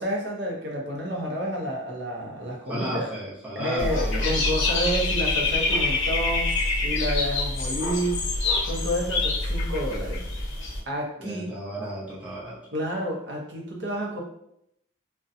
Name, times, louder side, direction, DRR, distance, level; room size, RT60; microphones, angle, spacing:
voice 1, 0.0-3.1 3.5-6.5 6.8-8.2 8.7-10.2 10.9-11.5 12.7-14.2, equal, 60° right, -1 dB, 0.6 m, -29 dB
voice 2, 2.7-4.3 11.2-12.6, right 1 dB, 5° right, -8 dB, 0.7 m, -33 dB
Dog / Bird, 3.8-10.8, left 2 dB, 80° left, 0.6 m, -26 dB
2.6 x 2.1 x 2.4 m, 0.77 s
head